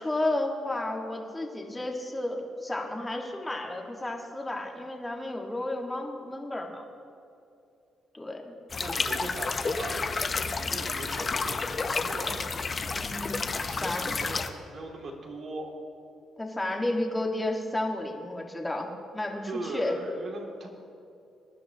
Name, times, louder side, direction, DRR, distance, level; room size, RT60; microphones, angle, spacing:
voice 1, 0.0-6.8 8.1-8.5 13.0-13.4 13.8-14.2 16.4-20.0, left 1 dB, 15° left, 1 dB, 1.6 m, -32 dB
sound 1, 8.7-14.5, left 4 dB, 35° left, 0.7 m, -30 dB
voice 2, 8.8-12.4 13.6-15.7 19.5-20.7, right 2 dB, 60° right, 0 dB, 2.4 m, -39 dB
21.5 x 10.5 x 2.9 m, 2.6 s
cardioid pair, 90°, 0 cm